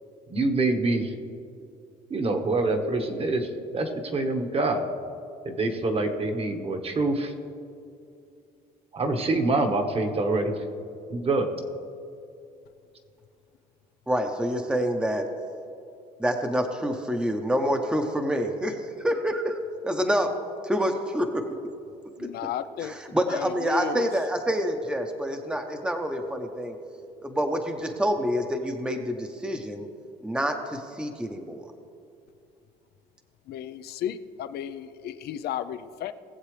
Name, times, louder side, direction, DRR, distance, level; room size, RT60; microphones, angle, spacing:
voice 1, 0.3-1.1 2.1-4.8 5.4-7.3 8.9-10.6 11.1-11.5, right 2 dB, 35° right, 5 dB, 1.4 m, -25 dB
voice 2, 14.1-15.3 16.2-19.6 19.8-20.4 20.6-21.4 22.2-22.3 22.8-26.8 27.2-29.9 30.2-31.6, equal, 5° right, 5 dB, 0.9 m, -27 dB
voice 3, 22.2-23.0 23.3-24.1 33.5-36.1, left 10 dB, 70° left, 11 dB, 0.6 m, -33 dB
20.0 x 7.4 x 3.3 m, 2.5 s
cardioid pair, 110°, 17 cm